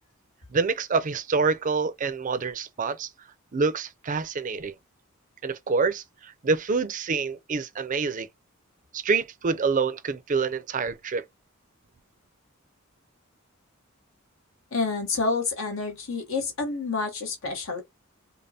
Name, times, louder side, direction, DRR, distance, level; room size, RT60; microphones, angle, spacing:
voice 1, 0.5-3.1 3.5-4.7 5.4-8.3 8.9-11.2, right 4 dB, 40° right, 0.5 m, -27 dB
voice 2, 14.7-17.8, left 3 dB, 65° left, 1.1 m, -28 dB
5.2 x 2.1 x 2.7 m
head